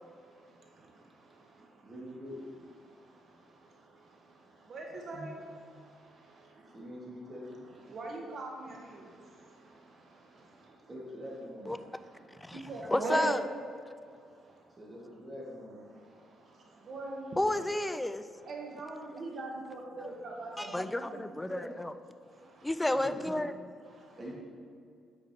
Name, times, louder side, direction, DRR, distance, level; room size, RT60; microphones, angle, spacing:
voice 1, 1.8-2.4 5.1-5.3 6.7-7.6 10.9-11.7 14.8-15.8 22.9-23.3 24.2-24.3, equal, 30° right, -4 dB, 1.6 m, -44 dB
voice 2, 4.7-5.4 7.9-8.5 12.7-13.3 16.9-17.3 18.5-20.5 21.1-21.2 21.5-21.6, right 3 dB, 55° right, -1 dB, 1.1 m, -38 dB
voice 3, 12.9-13.5 17.4-18.2 20.0-20.1 20.6-21.9 22.6-23.5, left 1 dB, 10° left, 11 dB, 0.3 m, -31 dB
8.4 x 5.1 x 2.7 m, 2.3 s
cardioid pair, 90°, 0 cm